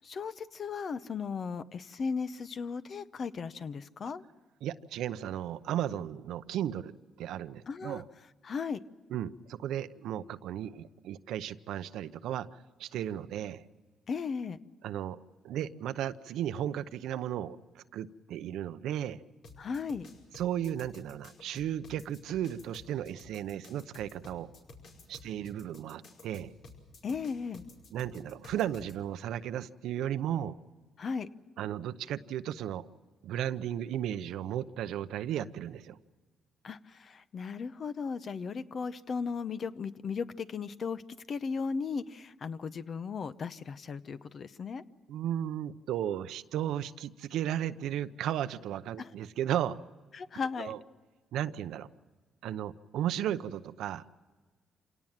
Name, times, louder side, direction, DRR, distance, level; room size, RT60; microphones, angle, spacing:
voice 1, 0.0-4.2 7.7-8.0 8.4-8.8 14.1-14.6 19.6-20.1 27.0-27.7 31.0-31.3 36.6-41.0 41.3-44.8 49.0-49.1 50.1-50.7, left 5 dB, 50° left, 13 dB, 0.8 m, -36 dB
voice 2, 4.6-6.9 7.2-8.0 9.1-12.5 12.8-13.6 14.8-15.2 15.4-19.2 20.4-24.5 25.1-26.5 27.9-30.6 31.6-32.9 33.2-36.0 45.1-49.8 50.6-50.8 51.3-51.9 52.4-54.0, right 11 dB, 85° right, 12 dB, 0.7 m, -35 dB
sound 1, 19.4-28.9, left 3 dB, 70° left, 5.1 m, -52 dB
27.0 x 18.0 x 7.4 m, 1.4 s
cardioid pair, 90°, 0 cm